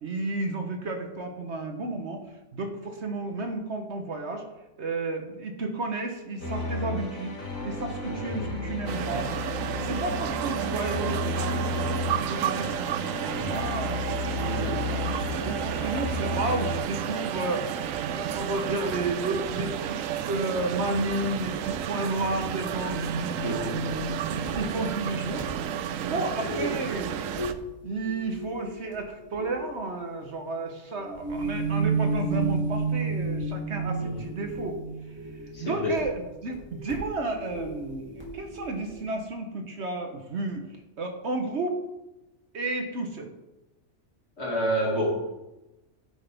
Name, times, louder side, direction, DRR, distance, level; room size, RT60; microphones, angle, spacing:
voice 1, 0.0-2.2 2.5-4.4 4.8-7.4 7.6-9.3 9.8-15.0 15.4-17.7 18.1-20.0 20.2-23.4 24.3-25.5 26.1-27.2 27.8-34.8 35.1-35.2 35.6-41.8 42.5-43.3, right 2 dB, 55° right, 5 dB, 1.2 m, -32 dB
sound 1, 6.4-16.8, left 2 dB, 80° left, 2.3 m, -33 dB
voice 2, 8.1-8.5 14.4-14.9 23.4-23.9 26.4-26.8 34.0-34.2 35.5-36.0 44.4-45.3, equal, 55° left, -2 dB, 2.5 m, -29 dB
sound 2, 8.9-27.5, right 9 dB, 75° right, 1.0 m, -32 dB
sound 3, 21.2-21.3 22.0-22.1 22.4-26.6 27.0-27.6 27.9-29.6 31.0-39.0, right 3 dB, 10° right, 2.3 m, -33 dB
9.8 x 7.9 x 3.5 m, 0.99 s
omnidirectional pair, 1.4 m